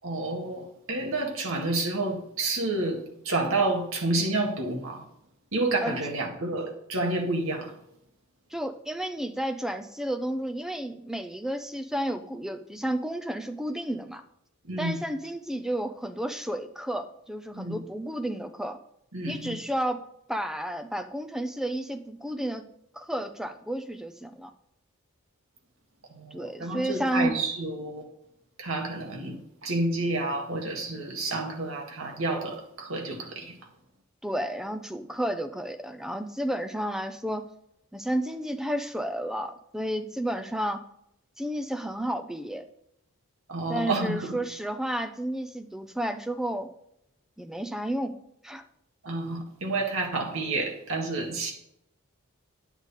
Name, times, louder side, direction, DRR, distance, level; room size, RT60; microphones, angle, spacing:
voice 1, 0.0-5.1 5.5-7.8 14.6-15.0 17.5-17.8 19.1-19.6 26.1-28.0 28.6-33.6 43.5-44.4 49.0-51.5, right 2 dB, 65° right, 1.8 m, -29 dB
voice 2, 8.5-14.2 14.8-18.8 19.3-20.0 20.3-22.6 22.9-24.5 26.3-27.4 34.2-37.4 37.9-40.8 41.4-42.6 43.7-46.7 47.4-48.2 48.4-48.6, right 1 dB, ahead, 0.6 m, -31 dB
10.0 x 8.0 x 4.1 m
head